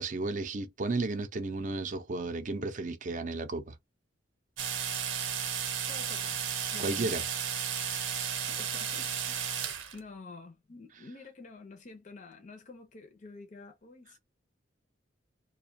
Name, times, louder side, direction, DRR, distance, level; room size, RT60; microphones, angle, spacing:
voice 1, 0.0-3.8 6.8-7.2, right 3 dB, 40° right, 0.5 m, -33 dB
electro toothbrush with head away, 4.6-10.0, right 8 dB, 90° right, 0.7 m, -33 dB
voice 2, 5.9-6.4 6.7-7.1 8.4-14.2, left 3 dB, 40° left, 0.5 m, -49 dB
2.5 x 2.2 x 2.6 m
head